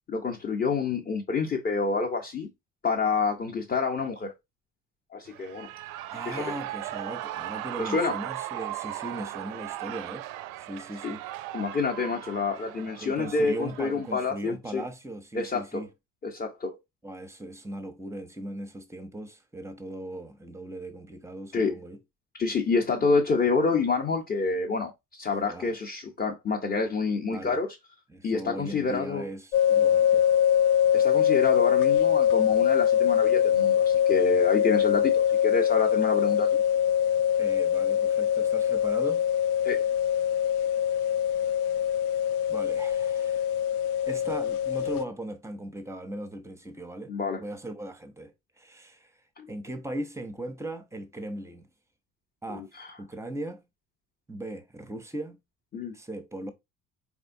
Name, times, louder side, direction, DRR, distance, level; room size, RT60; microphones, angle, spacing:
voice 1, 0.1-2.5 2.8-4.3 5.1-5.7 6.3-6.5 7.8-8.2 11.0-11.1 11.5-14.8 15.3-15.9 16.2-16.8 21.5-21.7 22.4-27.7 28.2-29.3 30.9-36.6 39.6-39.8 47.1-47.4 49.4-49.5 52.5-52.9 55.7-55.9, left 4 dB, 20° left, 0.9 m, -28 dB
Shout / Cheering, 5.3-14.2, right 15 dB, 50° right, 0.4 m, -38 dB
voice 2, 5.7-10.3 10.6-11.2 13.0-15.9 17.0-22.0 25.4-25.7 27.3-27.6 28.1-30.2 37.4-39.3 42.5-43.4 44.1-47.1 47.4-49.2 49.5-51.7 52.4-52.7 53.0-53.6 54.3-55.4 55.9-56.5, right 1 dB, 5° right, 0.8 m, -38 dB
sound 1, 29.5-45.0, left 9 dB, 75° left, 0.5 m, -23 dB
4.2 x 3.6 x 2.7 m
figure-of-eight pair, 55°, 45 cm